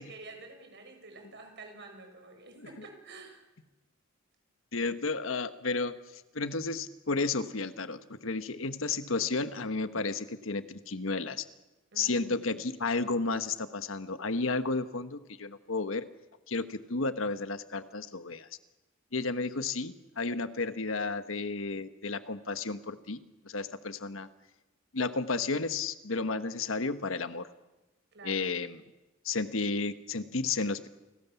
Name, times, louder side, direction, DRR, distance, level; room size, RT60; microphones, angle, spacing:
voice 1, 0.0-3.4 11.9-12.6 28.1-28.5, right 3 dB, 60° right, 4 dB, 6.4 m, -49 dB
voice 2, 4.7-6.0 6.3-11.4 12.0-16.0 16.5-18.5 19.1-24.3 24.9-27.5 28.2-28.8 29.2-30.9, left 3 dB, 75° left, 11 dB, 1.3 m, -32 dB
29.0 x 19.0 x 7.2 m, 1.1 s
head